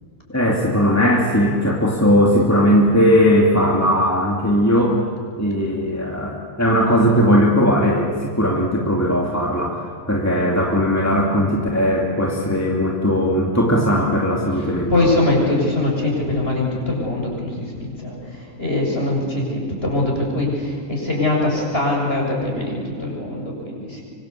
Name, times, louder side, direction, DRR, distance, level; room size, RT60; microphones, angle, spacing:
voice 1, 0.3-5.0 5.4-15.1, equal, 10° left, -1 dB, 2.6 m, -18 dB
voice 2, 14.9-24.0, left 2 dB, 40° left, -1 dB, 7.4 m, -22 dB
25.5 x 25.0 x 8.4 m, 2.2 s
omnidirectional pair, 1.6 m